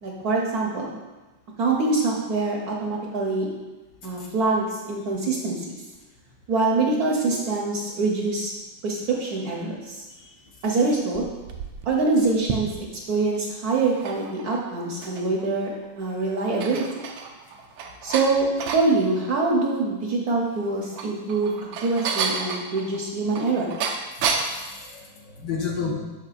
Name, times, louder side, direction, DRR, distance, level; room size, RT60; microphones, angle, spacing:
voice 1, 0.0-0.9 1.6-3.5 4.0-5.6 6.5-8.5 8.8-10.0 10.6-11.2 11.9-12.7 13.1-16.8 18.0-21.5 21.8-23.8, right 3 dB, 60° right, -2 dB, 1.2 m, -24 dB
sound 1, 10.9-13.1 13.8-15.4 15.8-15.9 16.3-18.9 20.6-24.6, right 5 dB, 85° right, 1.4 m, -31 dB
voice 2, 24.2-25.9, left 5 dB, 65° left, -1 dB, 1.4 m, -32 dB
6.7 x 6.1 x 2.4 m, 1.1 s
omnidirectional pair, 2.1 m